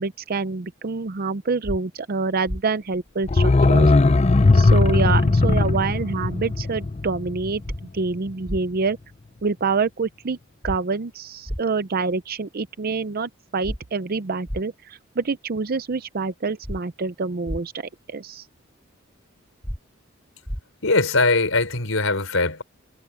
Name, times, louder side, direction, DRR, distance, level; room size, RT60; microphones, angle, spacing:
voice 1, 0.0-3.9 4.5-7.6 7.9-9.0 9.4-10.4 10.6-18.4, right 4 dB, 50° right, 0.6 m, -26 dB
sound 1, 1.6-1.8 2.5-2.6 4.6-4.8 5.5-5.6 7.6-7.8 8.5-8.6 10.6-10.8 11.5-11.6 13.6-13.8 14.5-14.6 16.6-16.8 17.5-17.6 19.6-19.8 20.5-20.6, equal, 10° left, 2.5 m, -29 dB
sound 2, 3.2-8.0 8.3-8.4, left 3 dB, 30° left, 0.5 m, -18 dB
voice 2, 20.8-22.6, left 3 dB, 80° left, 4.7 m, -21 dB
head